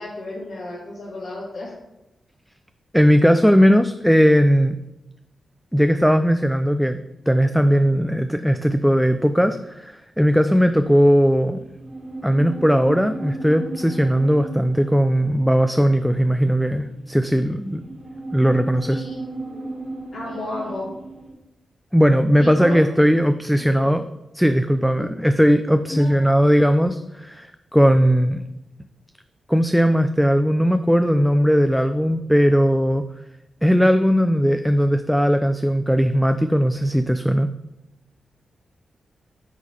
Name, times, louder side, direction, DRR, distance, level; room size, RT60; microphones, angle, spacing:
voice 1, 0.0-1.7 18.8-19.7 20.1-20.9 22.4-22.7 23.6-23.9 25.9-26.5, left 2 dB, 70° left, -8 dB, 2.4 m, -33 dB
voice 2, 2.9-4.8 5.7-7.0 7.3-11.6 12.2-17.8 18.3-19.0 21.9-24.1 24.3-28.4 29.5-33.0 33.6-37.5, equal, ahead, 8 dB, 0.4 m, -18 dB
sound 1, 10.4-21.3, right 2 dB, 65° right, 2.0 m, -36 dB
8.1 x 3.7 x 4.8 m, 0.91 s
cardioid pair, 70°, 0 cm